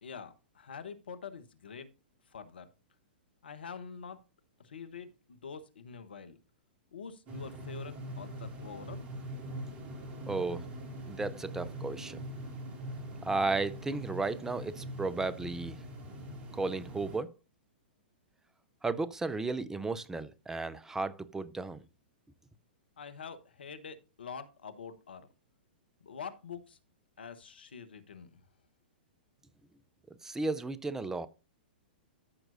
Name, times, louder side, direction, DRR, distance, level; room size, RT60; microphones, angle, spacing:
voice 1, 0.0-1.9 2.3-2.7 3.4-4.2 4.6-6.4 6.9-9.1 23.0-25.3 26.0-26.8 27.2-28.4, left 6 dB, 75° left, 1.2 m, -45 dB
sound 1, 7.3-17.2, equal, 25° right, 2.3 m, -43 dB
voice 2, 10.3-10.6 11.1-12.2 13.2-15.8 16.5-17.3 18.8-21.8 30.2-31.3, right 3 dB, 10° right, 0.6 m, -34 dB
14.0 x 6.0 x 2.7 m
hypercardioid pair, 115°, 5 cm